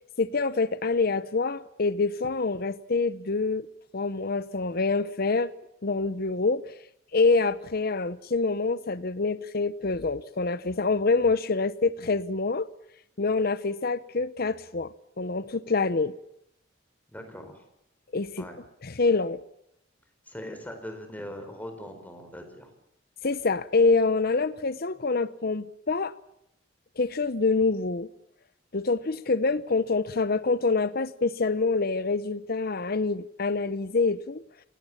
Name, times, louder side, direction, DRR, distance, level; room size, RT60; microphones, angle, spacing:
voice 1, 0.2-3.7 3.9-5.5 5.8-6.6 7.1-12.7 13.2-14.9 15.2-16.1 18.1-18.5 18.8-19.4 23.2-26.1 27.0-28.1 28.7-34.4, left 3 dB, 50° left, 0.8 m, -26 dB
voice 2, 17.1-17.7 18.4-18.6 20.3-22.7, equal, 10° left, 4.6 m, -40 dB
28.0 x 18.0 x 7.3 m
head